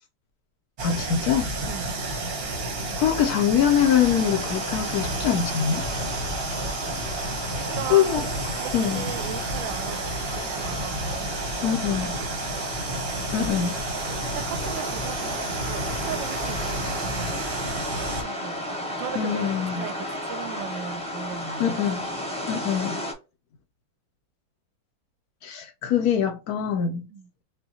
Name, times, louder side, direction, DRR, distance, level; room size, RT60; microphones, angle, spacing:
voice 1, 0.8-1.5 3.0-5.9 7.9-8.3 8.7-9.1 11.6-12.2 13.3-13.8 19.2-19.9 21.6-22.0 22.5-23.0 25.4-27.1, left 9 dB, 70° left, 0.9 m, -23 dB
sound 1, 0.8-18.2, right 2 dB, 45° right, 0.8 m, -31 dB
sound 2, 3.6-23.1, left 1 dB, 5° left, 0.7 m, -34 dB
voice 2, 7.5-11.5 11.8-12.6 14.2-17.3 18.1-18.6 19.0-21.8 27.1-27.3, right 9 dB, 80° right, 1.3 m, -38 dB
5.4 x 2.2 x 2.7 m
omnidirectional pair, 2.1 m